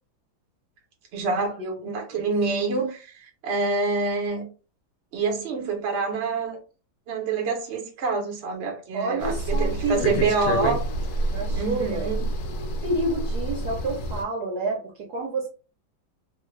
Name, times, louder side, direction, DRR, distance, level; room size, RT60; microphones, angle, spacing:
voice 1, 1.1-1.5 1.8-4.5 5.1-6.6 7.1-10.8 11.5-12.3, right 4 dB, 45° right, 0.9 m, -26 dB
voice 2, 8.9-10.7 11.3-12.1 12.8-15.5, right 2 dB, 65° right, 1.2 m, -29 dB
sound 1, 9.2-14.2, right 1 dB, 70° left, 0.9 m, -28 dB
3.1 x 2.3 x 3.1 m
omnidirectional pair, 2.1 m